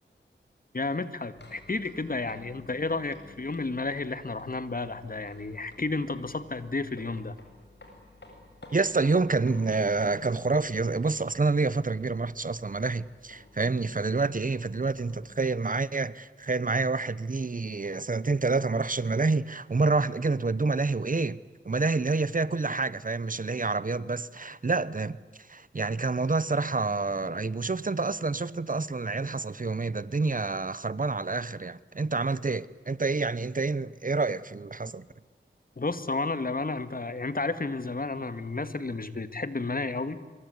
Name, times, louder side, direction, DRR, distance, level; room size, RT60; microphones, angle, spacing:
voice 1, 0.7-7.4 35.8-40.2, left 3 dB, 50° left, 2.0 m, -32 dB
sound 1, 1.3-15.6, left 2 dB, 65° left, 7.5 m, -53 dB
voice 2, 8.7-21.4 21.6-25.2 25.5-35.0, right 3 dB, 45° right, 1.0 m, -28 dB
25.5 x 23.5 x 9.8 m
wide cardioid pair, 70°, 20 cm